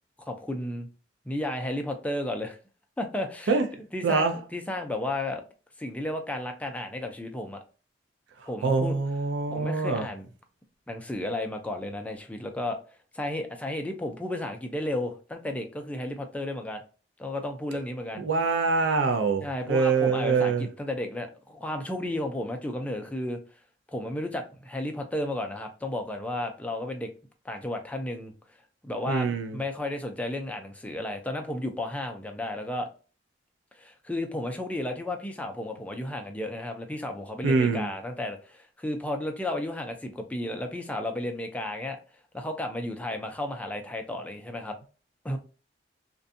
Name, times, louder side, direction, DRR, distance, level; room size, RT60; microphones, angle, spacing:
voice 1, 0.3-0.9 1.3-2.6 3.0-3.5 3.9-5.4 5.8-7.6 8.5-9.0 9.5-10.3 10.9-12.8 13.1-16.8 17.2-18.3 19.4-23.4 23.9-27.1 27.4-28.3 28.8-32.9 33.8-42.0 42.3-44.8 45.2-45.4, left 1 dB, 10° left, 0.4 m, -33 dB
voice 2, 4.0-4.4 8.6-10.1 18.2-20.7 29.1-29.6 37.4-37.9, right 4 dB, 75° right, 0.4 m, -24 dB
2.5 x 2.2 x 2.5 m
head